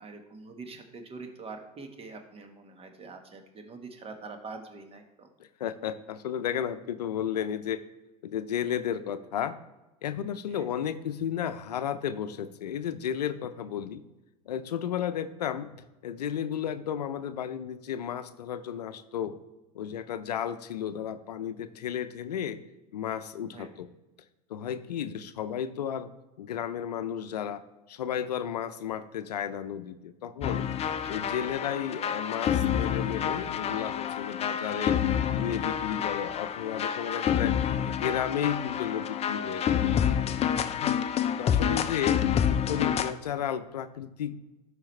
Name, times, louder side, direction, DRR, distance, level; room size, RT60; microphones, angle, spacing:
voice 1, 0.0-5.3 10.5-10.7 23.5-23.7 31.0-31.9 35.9-36.2, right 4 dB, 30° right, 5 dB, 1.4 m, -45 dB
voice 2, 5.4-7.8 8.2-9.6 10.0-14.0 14.5-19.4 19.7-22.6 22.9-23.9 24.5-26.1 26.4-27.6 27.9-30.7 31.1-35.0 35.3-37.6 37.8-39.8 40.8-41.0 41.4-44.4, left 9 dB, 85° left, 12 dB, 0.6 m, -33 dB
sound 1, 30.4-43.1, left 9 dB, 30° left, 0.5 m, -28 dB
13.0 x 4.9 x 3.2 m, 1.0 s
hypercardioid pair, 85°, 20 cm